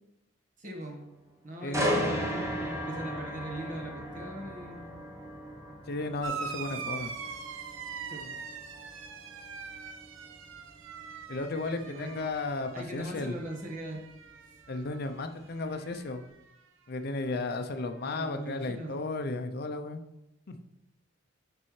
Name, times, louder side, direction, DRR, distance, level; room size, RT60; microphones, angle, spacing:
voice 1, 0.6-1.1 1.4-5.0 6.6-6.8 8.1-8.4 11.7-12.2 12.7-14.0 18.0-19.1, right 1 dB, 40° right, 1 dB, 1.3 m, -41 dB
voice 2, 1.6-2.1 5.9-7.1 11.3-13.4 14.7-16.2 16.9-20.0 20.5-20.6, left 2 dB, 50° left, 7 dB, 0.5 m, -34 dB
sound 1, 1.7-15.6 16.0-16.3, equal, 15° right, 0.9 m, -37 dB
sound 2, 6.2-15.2 15.5-16.3 17.4-17.5, right 6 dB, 75° right, 0.6 m, -42 dB
9.7 x 5.4 x 3.2 m, 0.89 s
head